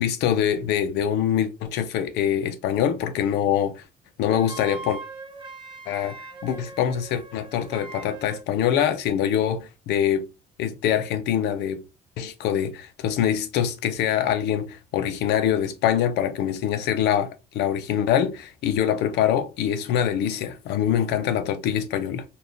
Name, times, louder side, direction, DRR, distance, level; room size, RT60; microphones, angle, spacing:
voice 1, 0.0-3.8 4.2-5.0 5.9-6.2 6.4-10.3 10.6-11.8 12.2-22.2, left 9 dB, 85° left, 0.7 m, -24 dB
Wind instrument woodwind instrument, 4.3-8.5, right 3 dB, 30° right, 0.9 m, -41 dB
4.1 x 2.5 x 3.4 m
cardioid pair, 110°, 17 cm